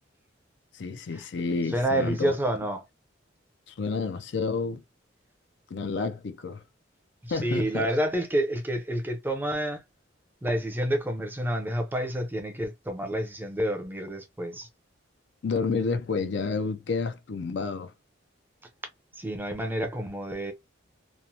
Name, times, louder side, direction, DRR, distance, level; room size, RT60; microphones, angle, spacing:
voice 1, 0.7-2.3 3.7-4.8 5.7-6.6 7.3-7.8 15.4-17.9, left 4 dB, 65° left, 0.4 m, -30 dB
voice 2, 1.7-2.8 7.2-9.8 10.4-14.7 19.2-20.5, right 1 dB, 10° right, 0.5 m, -29 dB
3.0 x 2.0 x 2.7 m
head